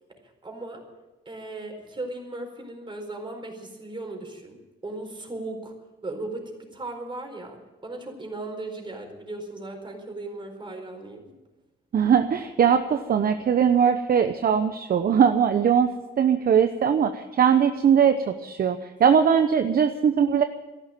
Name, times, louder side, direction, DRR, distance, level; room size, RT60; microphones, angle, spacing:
voice 1, 0.4-0.8 1.3-5.7 6.0-11.3, right 2 dB, 25° right, 3 dB, 4.5 m, -37 dB
voice 2, 11.9-20.4, right 7 dB, 50° right, 8 dB, 0.9 m, -21 dB
14.0 x 11.5 x 9.0 m, 1.1 s
cardioid pair, 90°, 20 cm